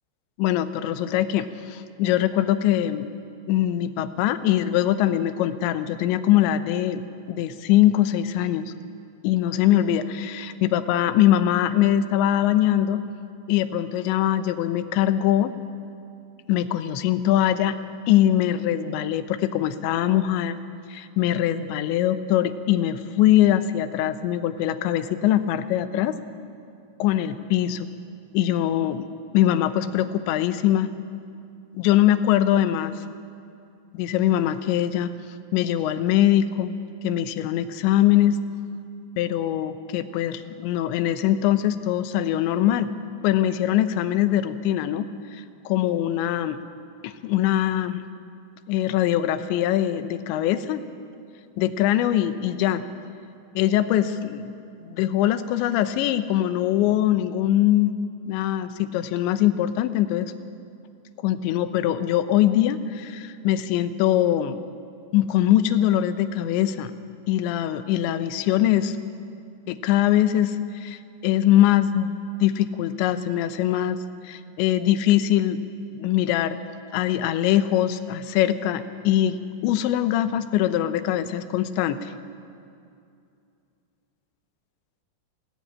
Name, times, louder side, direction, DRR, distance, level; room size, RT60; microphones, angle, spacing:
voice 1, 0.4-3.1 3.5-8.7 9.2-13.0 13.5-15.5 16.5-17.8 18.1-20.6 20.9-26.2 27.0-27.9 28.3-29.1 29.3-30.9 31.7-32.9 33.9-35.1 35.5-36.8 37.0-38.4 39.2-42.9 43.2-45.1 45.3-46.6 47.0-48.0 48.7-50.8 51.6-52.8 53.6-54.5 54.8-57.9 58.3-60.3 61.2-64.6 65.1-66.9 67.3-69.0 69.7-72.1 72.4-74.0 74.2-75.6 75.9-76.6 76.9-82.1, left 12 dB, 85° left, 10 dB, 3.2 m, -22 dB
26.0 x 18.5 x 9.8 m, 2.5 s
omnidirectional pair, 5.2 m